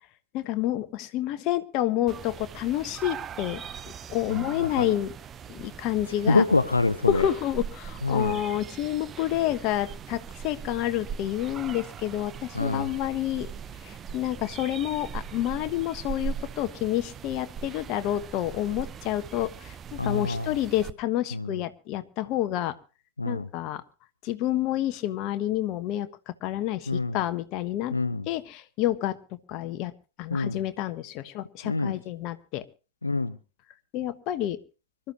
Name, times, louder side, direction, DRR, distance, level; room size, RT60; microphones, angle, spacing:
voice 1, 0.3-3.6 4.1-5.1 5.5-6.4 7.1-13.5 13.8-22.7 23.2-23.8 24.2-26.1 26.4-27.9 28.3-29.2 29.5-29.9 30.2-32.6 33.9-34.6, left 13 dB, 40° left, 10 dB, 1.2 m, -29 dB
sound 1, 2.1-20.9, right 7 dB, 25° right, 0.7 m, -40 dB
voice 2, 4.3-4.9 6.3-7.2 8.0-8.4 12.5-12.9 20.0-20.5 21.3-21.5 23.2-23.5 26.9-27.2 27.9-28.3 30.3-30.6 31.6-31.9 33.0-33.4, left 3 dB, 80° left, 13 dB, 0.7 m, -26 dB
25.0 x 13.0 x 2.9 m, 0.34 s
figure-of-eight pair, 90°, 0 cm